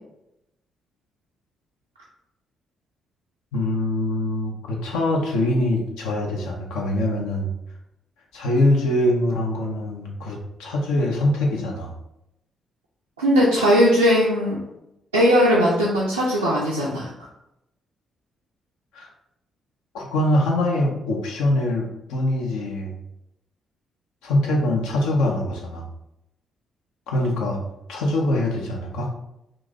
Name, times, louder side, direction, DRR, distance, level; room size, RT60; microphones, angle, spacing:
voice 1, 3.5-7.5 8.3-11.9 18.9-19.1 19.9-23.0 24.2-25.9 27.1-27.6 27.9-29.1, left 1 dB, 75° left, -1 dB, 0.7 m, -23 dB
voice 2, 13.2-14.6 15.1-17.1, equal, 90° right, -8 dB, 0.5 m, -18 dB
2.9 x 2.6 x 3.7 m, 0.86 s
figure-of-eight pair, 40°, 0 cm